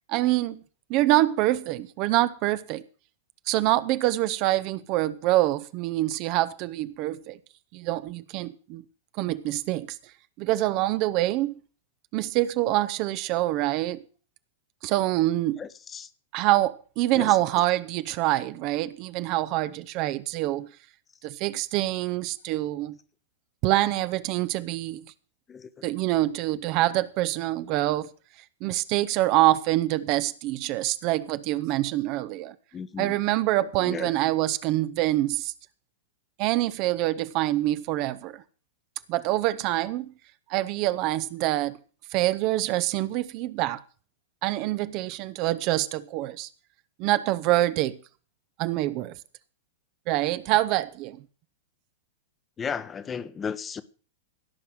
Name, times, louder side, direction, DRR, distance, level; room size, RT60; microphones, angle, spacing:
voice 1, 0.1-0.6 0.9-2.8 3.5-7.4 7.7-8.8 9.2-9.9 10.4-11.6 12.1-14.0 14.8-15.6 16.3-20.7 21.2-23.0 23.6-25.0 25.8-28.1 28.6-32.5 33.0-35.5 36.4-38.4 39.1-40.1 40.5-41.8 42.1-43.8 44.4-46.5 47.0-48.0 48.6-49.1 50.1-51.2, right 16 dB, 45° right, 0.8 m, -25 dB
voice 2, 15.6-16.1 17.1-17.6 25.5-25.9 32.7-33.2 33.8-34.1 52.6-53.8, left 6 dB, 20° left, 1.1 m, -35 dB
17.0 x 5.8 x 7.7 m
figure-of-eight pair, 100°, 0 cm